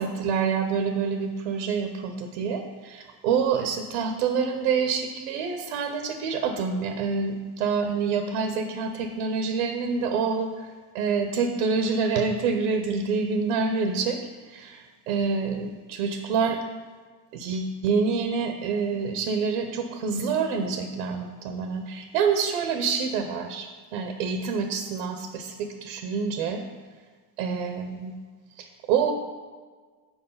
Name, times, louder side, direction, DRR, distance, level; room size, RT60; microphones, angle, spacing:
voice 1, 0.0-10.7 10.9-14.2 14.5-16.6 17.3-26.6 27.4-28.1 28.6-29.1, right 5 dB, 90° right, 5 dB, 0.7 m, -27 dB
7.1 x 4.4 x 5.6 m, 1.5 s
hypercardioid pair, 70°, 43 cm